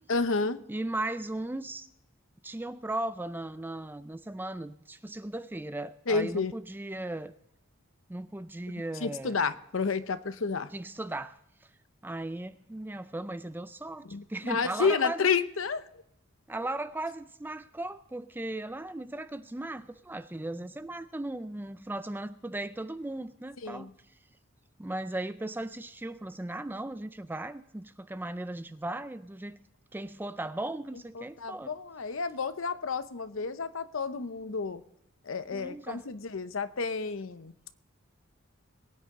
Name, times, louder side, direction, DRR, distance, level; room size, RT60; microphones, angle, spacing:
voice 1, 0.1-0.6 6.1-6.5 9.0-10.7 14.0-15.8 23.6-23.9 31.1-34.8 35.2-37.5, left 4 dB, 65° left, 12 dB, 0.8 m, -30 dB
voice 2, 0.7-1.9 2.4-7.3 8.1-9.4 10.7-11.4 12.0-15.3 16.5-23.9 24.8-29.6 29.9-31.8 35.5-36.0, right 1 dB, 10° right, 12 dB, 0.4 m, -37 dB
22.0 x 9.5 x 3.7 m, 0.79 s
head